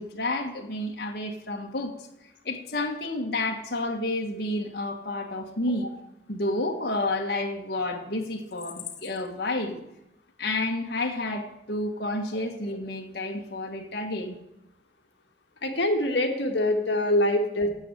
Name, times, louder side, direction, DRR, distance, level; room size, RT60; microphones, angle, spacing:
voice 1, 0.0-1.9 2.4-5.9 6.3-9.8 10.4-14.4, left 2 dB, 55° left, 0 dB, 1.6 m, -30 dB
voice 2, 15.6-17.7, left 1 dB, 70° left, 3 dB, 1.6 m, -24 dB
9.7 x 8.0 x 8.5 m, 0.85 s
head